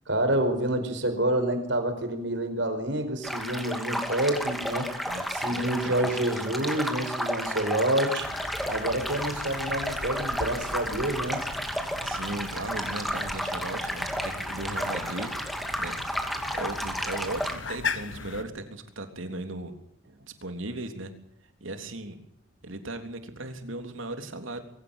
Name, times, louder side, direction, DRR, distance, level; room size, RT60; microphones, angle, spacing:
voice 1, 0.1-4.9 5.3-8.3 8.7-11.4, right 1 dB, 70° right, 8 dB, 4.8 m, -28 dB
sound 1, 3.2-17.6, equal, ahead, 2.5 m, -32 dB
voice 2, 5.5-6.1 12.0-15.3 15.7-16.0 16.2-19.7 20.4-21.1 21.6-22.2 22.6-24.6, right 2 dB, 90° right, 7 dB, 3.4 m, -37 dB
sound 2, 8.2-18.4, left 4 dB, 75° left, 1.5 m, -39 dB
23.0 x 16.5 x 9.0 m, 0.73 s
head